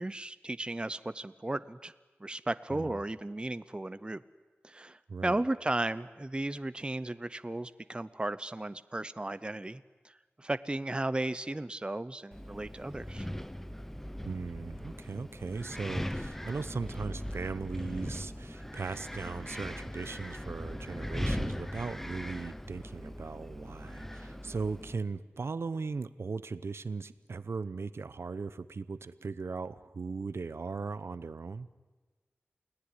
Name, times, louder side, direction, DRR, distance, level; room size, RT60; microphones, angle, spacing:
voice 1, 0.0-1.9 2.2-4.2 4.6-13.3, right 2 dB, 25° right, 14 dB, 0.7 m, -35 dB
voice 2, 5.1-5.4 14.2-31.7, right 4 dB, 75° right, 14 dB, 0.8 m, -38 dB
Wind, 12.3-24.9, equal, 5° left, 0.8 m, -39 dB
29.0 x 18.5 x 9.8 m, 1.3 s
wide cardioid pair, 75°, 4 cm